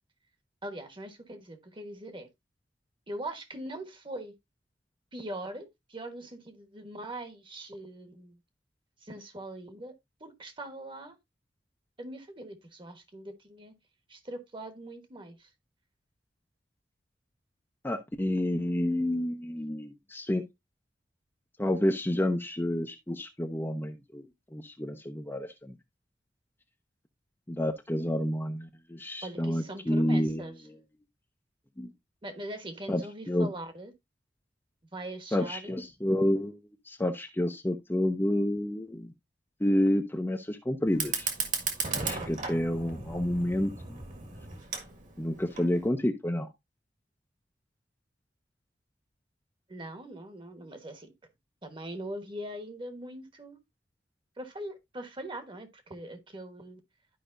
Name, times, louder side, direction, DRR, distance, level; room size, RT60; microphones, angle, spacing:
voice 1, 0.6-2.3 3.1-4.3 5.1-8.4 9.0-9.9 10.2-11.1 12.0-13.7 14.1-15.5 29.2-30.5 32.2-33.9 34.9-35.8 49.7-51.1 51.6-53.6 54.4-56.8, right 1 dB, 30° right, 1.3 m, -41 dB
voice 2, 17.8-20.4 21.6-24.2 24.5-25.7 27.5-30.8 31.8-31.9 32.9-33.5 35.3-36.6 36.9-39.1 39.6-41.3 41.9-44.0 45.2-46.5, left 1 dB, 10° left, 0.6 m, -29 dB
Fire, 40.9-45.9, right 5 dB, 45° right, 1.7 m, -35 dB
12.0 x 5.0 x 2.5 m
head